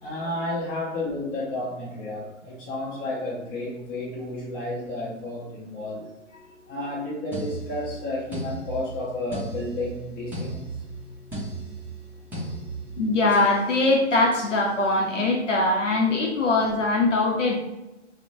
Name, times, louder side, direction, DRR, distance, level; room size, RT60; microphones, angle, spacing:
voice 1, 0.0-6.1 6.7-10.6, left 2 dB, 30° left, -7 dB, 0.7 m, -31 dB
sound 1, 7.3-13.6 14.3-14.6, right 2 dB, 5° right, 0.6 m, -36 dB
voice 2, 13.0-17.5, left 2 dB, 90° left, -2 dB, 0.6 m, -22 dB
2.8 x 2.1 x 2.6 m, 0.97 s
figure-of-eight pair, 115°, 36 cm